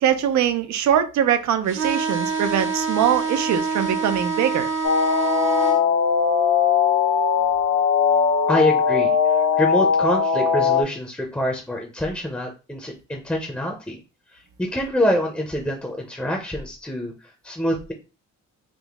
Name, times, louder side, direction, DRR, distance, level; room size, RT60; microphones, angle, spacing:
voice 1, 0.0-4.7, right 9 dB, 70° right, 10 dB, 0.5 m, -22 dB
sound 1, 1.7-5.8, right 4 dB, 40° right, 0.9 m, -26 dB
sound 2, 4.8-10.8, left 6 dB, 60° left, 0.8 m, -19 dB
voice 2, 8.5-9.1 9.6-14.0 14.3-17.1 17.4-17.9, equal, 5° left, 1 dB, 0.7 m, -25 dB
3.6 x 2.0 x 3.5 m, 0.32 s
cardioid pair, 90°, 30 cm